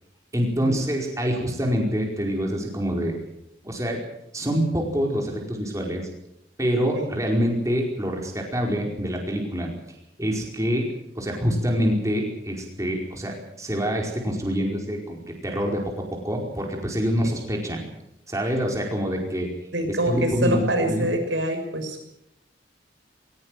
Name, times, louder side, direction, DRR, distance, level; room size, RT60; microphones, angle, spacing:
voice 1, 0.3-3.1 3.6-4.0 4.3-6.1 6.6-9.7 10.2-15.8 16.2-17.8 18.3-19.5 19.9-21.1, equal, 15° right, 0 dB, 4.9 m, -26 dB
voice 2, 19.7-22.1, right 1 dB, 90° right, 5 dB, 6.4 m, -25 dB
21.5 x 19.0 x 7.7 m, 0.78 s
head